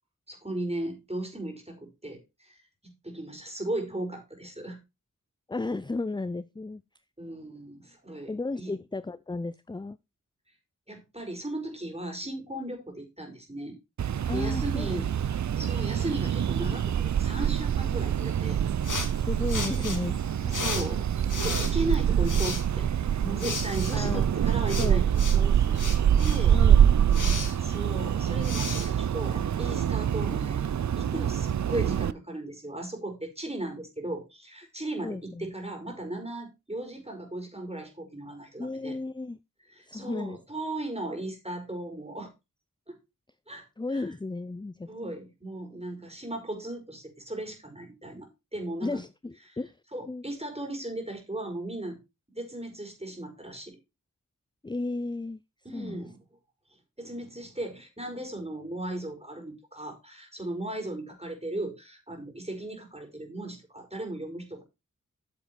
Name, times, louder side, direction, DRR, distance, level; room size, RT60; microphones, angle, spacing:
voice 1, 0.3-4.8 7.2-8.7 10.9-13.7 14.3-15.1 15.6-18.6 20.5-21.1 21.4-22.9 23.2-25.8 26.2-26.6 27.5-30.7 30.9-39.0 39.7-42.3 42.9-43.0 43.5-44.1 44.9-49.0 49.5-49.6 49.9-52.0 52.3-53.8 55.6-56.2 57.0-64.6, right 1 dB, 20° right, 4.8 m, -36 dB
voice 2, 5.5-6.8 8.3-10.0 14.3-14.9 19.2-20.6 23.9-24.3 24.8-25.0 25.3-25.4 26.5-26.8 27.1-27.4 35.0-35.5 38.6-39.4 39.9-40.4 43.8-45.1 48.8-49.8 50.1-50.2 54.6-55.4 55.7-56.1, left 3 dB, 15° left, 0.5 m, -34 dB
sound 1, 14.0-32.1, right 9 dB, 60° right, 0.5 m, -25 dB
sound 2, 18.8-29.8, left 3 dB, 65° left, 2.6 m, -37 dB
9.2 x 7.2 x 4.5 m
wide cardioid pair, 45°, 33 cm